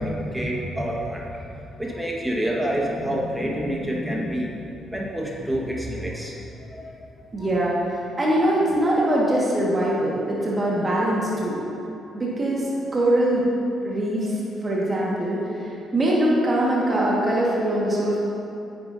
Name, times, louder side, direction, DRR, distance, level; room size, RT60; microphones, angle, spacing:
voice 1, 0.0-1.3 1.8-4.6 4.9-6.3 6.7-6.9 7.4-7.6, equal, 10° right, -3 dB, 1.6 m, -27 dB
voice 2, 7.3-11.6 12.1-13.4 13.8-18.2, right 1 dB, 35° right, -5 dB, 1.7 m, -23 dB
9.6 x 9.0 x 2.8 m, 2.8 s
hypercardioid pair, 45°, 0 cm